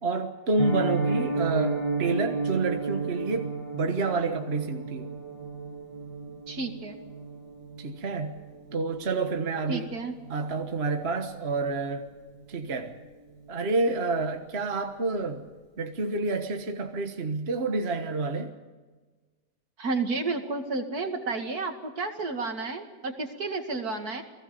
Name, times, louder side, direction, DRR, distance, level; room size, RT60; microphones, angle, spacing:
voice 1, 0.0-5.1 7.8-8.4 8.7-9.9 10.3-12.1 12.5-12.9 13.5-15.4 15.8-18.5, right 3 dB, 40° right, 5 dB, 1.5 m, -29 dB
Piano, 0.6-11.5 11.7-12.0 12.3-12.4 12.8-13.0 13.3-13.4, right 3 dB, 20° left, 7.1 m, -33 dB
voice 2, 6.5-7.0 9.7-10.1 19.8-24.2, right 3 dB, 65° right, 4 dB, 2.7 m, -31 dB
29.5 x 19.5 x 5.3 m, 1.3 s
omnidirectional pair, 1.8 m